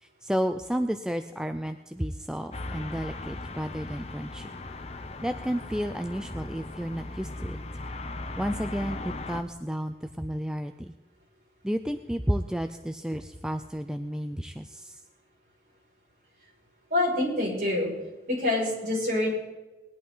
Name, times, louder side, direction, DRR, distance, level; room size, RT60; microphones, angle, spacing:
voice 1, 0.0-4.5 5.2-7.6 8.4-10.9 11.6-15.0, equal, 5° right, 7 dB, 0.4 m, -32 dB
sound 1, 2.5-9.4, left 2 dB, 35° left, 0.7 m, -38 dB
voice 2, 16.9-17.9 18.3-19.3, left 2 dB, 45° right, -4 dB, 5.9 m, -26 dB
20.0 x 11.0 x 3.9 m, 1.2 s
head